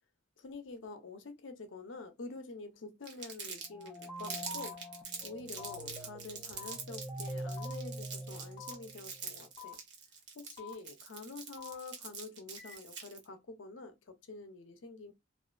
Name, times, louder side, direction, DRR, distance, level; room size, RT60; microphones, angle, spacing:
voice 1, 0.4-4.8 5.2-9.8 10.3-15.1, left 3 dB, 70° left, 0.5 m, -47 dB
Crumpling crinkling, 3.0-13.2, right 6 dB, 60° right, 0.8 m, -44 dB
sound 1, 3.6-9.1, right 1 dB, 5° right, 0.4 m, -44 dB
sound 2, 4.6-4.7 5.6-5.7 6.6-6.7 7.6-7.7 8.6-8.7 9.6-9.7 10.6-10.7 11.6-11.7 12.6-12.7, left 10 dB, 25° left, 0.7 m, -47 dB
2.4 x 2.4 x 2.2 m
head